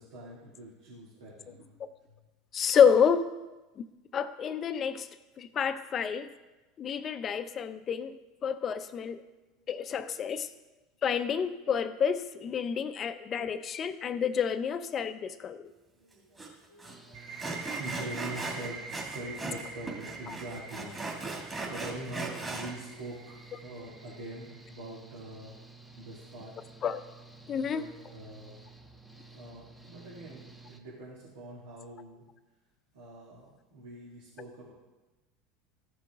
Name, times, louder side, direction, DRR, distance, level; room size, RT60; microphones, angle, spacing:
voice 1, 0.0-1.8 2.1-2.3 9.6-10.1 15.9-17.4 17.8-20.9 21.2-25.6 25.9-26.7 27.5-28.6 29.3-32.3 32.9-34.7, right 1 dB, 80° right, -8 dB, 2.4 m, -45 dB
voice 2, 2.5-3.3 3.8-3.9 4.1-5.1 5.4-6.3 6.8-8.2 8.4-9.2 9.7-10.5 11.0-15.7 26.8-27.0 27.5-27.9, left 7 dB, 40° left, 11 dB, 0.6 m, -28 dB
Sawing, 16.4-16.5 16.8-16.9 17.4-19.6 19.9-22.7, right 3 dB, 20° right, 2.4 m, -38 dB
Engine / Mechanical fan, 16.9-30.8, right 3 dB, ahead, 0.9 m, -53 dB
sound 1, 17.1-24.7, right 4 dB, 60° right, 1.7 m, -45 dB
14.5 x 6.0 x 3.7 m, 1.1 s
hypercardioid pair, 90°, 0 cm